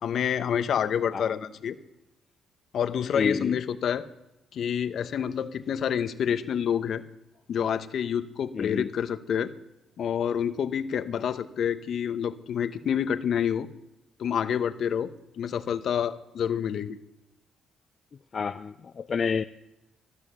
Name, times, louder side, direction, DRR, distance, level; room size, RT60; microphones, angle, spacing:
voice 1, 0.0-1.8 2.7-4.1 4.5-7.0 7.5-9.5 10.0-13.7 14.2-17.0, left 8 dB, 65° left, 10 dB, 1.0 m, -28 dB
voice 2, 3.1-3.5 8.5-8.9 18.3-19.4, left 6 dB, 45° left, 8 dB, 0.5 m, -28 dB
15.0 x 9.6 x 6.9 m, 0.89 s
cardioid pair, 90°, 0 cm